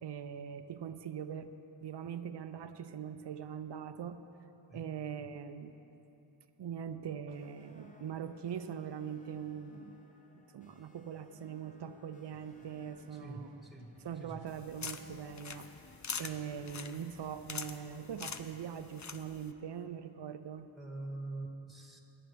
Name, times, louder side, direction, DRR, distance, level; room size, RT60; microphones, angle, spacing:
voice 1, 0.0-4.3 4.7-5.8 6.6-10.0 10.5-13.7 14.0-15.7 16.2-20.7, right 8 dB, 55° right, 9 dB, 0.7 m, -42 dB
sound 1, 7.3-16.9, left 1 dB, 15° left, 1.0 m, -62 dB
sound 2, 12.3-16.8 17.1-17.5, left 2 dB, 80° left, 1.5 m, -64 dB
voice 2, 13.2-14.4 20.7-22.0, right 2 dB, ahead, 1 dB, 1.6 m, -45 dB
sound 3, 14.5-19.5, left 5 dB, 35° left, 0.6 m, -45 dB
21.5 x 10.0 x 3.4 m, 2.9 s
cardioid pair, 65°, 49 cm